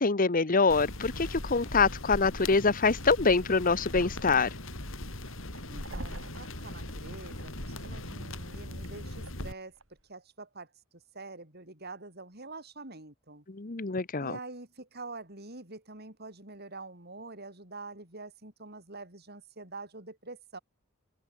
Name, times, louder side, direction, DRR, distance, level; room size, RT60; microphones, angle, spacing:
voice 1, 0.0-4.5 13.5-14.4, left 4 dB, 45° left, 1.0 m, -25 dB
sound 1, 0.7-9.5, left 1 dB, 80° left, 5.7 m, -39 dB
sound 2, 4.7-10.0, right 1 dB, 85° right, 6.7 m, -48 dB
voice 2, 5.7-9.7 10.1-10.7 11.1-13.4 14.2-20.6, right 3 dB, 55° right, 7.1 m, -45 dB
open air
head